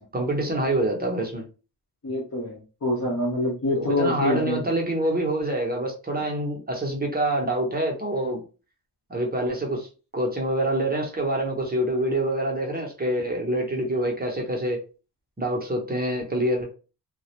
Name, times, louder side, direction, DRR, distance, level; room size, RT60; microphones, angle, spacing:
voice 1, 0.1-1.4 3.8-8.4 9.1-9.9 10.1-14.8 15.4-16.7, right 1 dB, 25° right, 0 dB, 0.7 m, -26 dB
voice 2, 2.0-4.6, left 1 dB, 40° left, -4 dB, 0.7 m, -26 dB
2.3 x 2.0 x 2.8 m, 0.33 s
wide cardioid pair, 125°, 41 cm